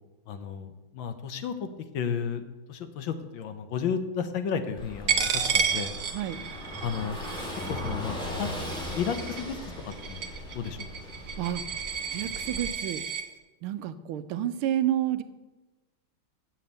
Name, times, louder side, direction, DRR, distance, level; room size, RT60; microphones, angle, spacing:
voice 1, 0.3-1.7 1.9-2.4 2.7-5.9 6.8-7.2 7.7-8.5 8.9-9.6 9.8-10.3 10.5-10.9, left 7 dB, 70° left, 8 dB, 1.5 m, -32 dB
Car passing by / Engine, 4.8-12.7, left 1 dB, ahead, 2.1 m, -38 dB
Coin (dropping), 5.1-13.2, right 6 dB, 55° right, 1.0 m, -31 dB
voice 2, 11.4-13.0 13.6-15.2, right 11 dB, 85° right, 12 dB, 1.5 m, -30 dB
7.4 x 7.0 x 7.9 m, 1.1 s
omnidirectional pair, 2.3 m